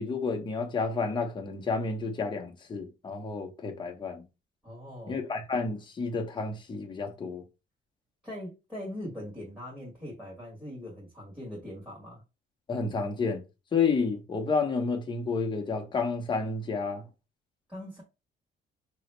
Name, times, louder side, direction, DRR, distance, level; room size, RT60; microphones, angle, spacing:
voice 1, 0.0-4.2 5.1-7.4 12.7-13.4 13.7-17.0, left 4 dB, 25° left, 1.1 m, -30 dB
voice 2, 4.6-5.2 8.2-12.2 17.7-18.0, left 1 dB, 5° right, 1.8 m, -41 dB
5.4 x 3.0 x 3.3 m
cardioid pair, 165°, 18 cm